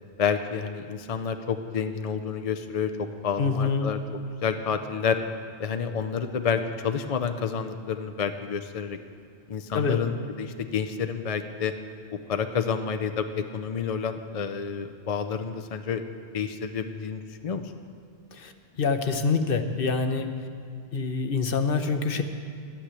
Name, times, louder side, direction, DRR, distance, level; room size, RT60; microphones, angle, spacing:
voice 1, 0.2-2.9 3.2-5.2 5.6-9.0 9.5-11.7 12.1-16.0 16.3-17.7, left 6 dB, 45° left, 7 dB, 0.5 m, -29 dB
voice 2, 3.4-3.9 9.7-10.0 18.3-18.5 18.8-20.3 20.9-22.2, left 4 dB, 60° left, 8 dB, 1.0 m, -25 dB
11.5 x 9.0 x 8.2 m, 2.3 s
omnidirectional pair, 1.1 m